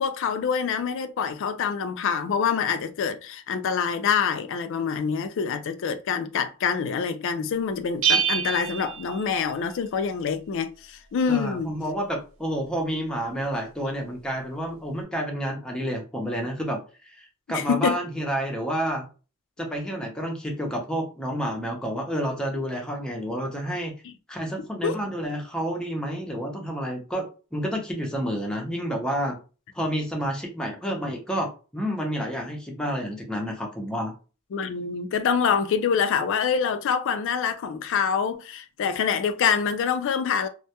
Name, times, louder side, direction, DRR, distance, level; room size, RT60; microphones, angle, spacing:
voice 1, 0.0-11.7 17.5-18.0 24.0-24.1 24.8-25.0 34.5-40.5, left 6 dB, 60° left, 0.3 m, -26 dB
Bell, 8.0-9.9, right 8 dB, 65° right, 0.4 m, -26 dB
voice 2, 11.3-19.1 19.6-23.9 24.3-27.3 27.5-29.4 29.7-34.1, equal, 5° left, 0.5 m, -29 dB
2.2 x 2.0 x 2.8 m
head